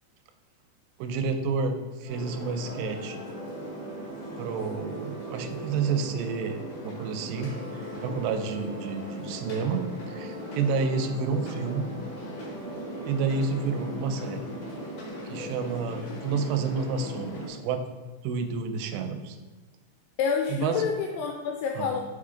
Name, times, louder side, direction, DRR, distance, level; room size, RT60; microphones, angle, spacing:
voice 1, 1.0-3.2 4.4-7.5 8.0-11.9 13.1-14.4 15.3-17.8 18.2-19.4 20.5-20.8 21.8-22.0, right 5 dB, 80° right, 6 dB, 2.7 m, -30 dB
sound 1, 2.0-15.5, right 1 dB, 45° right, 1.4 m, -43 dB
sound 2, 2.1-17.5, equal, 60° left, 2.0 m, -40 dB
voice 2, 20.2-22.0, left 6 dB, 85° left, 2 dB, 2.8 m, -28 dB
5.7 x 5.0 x 3.7 m, 1.2 s
omnidirectional pair, 5.3 m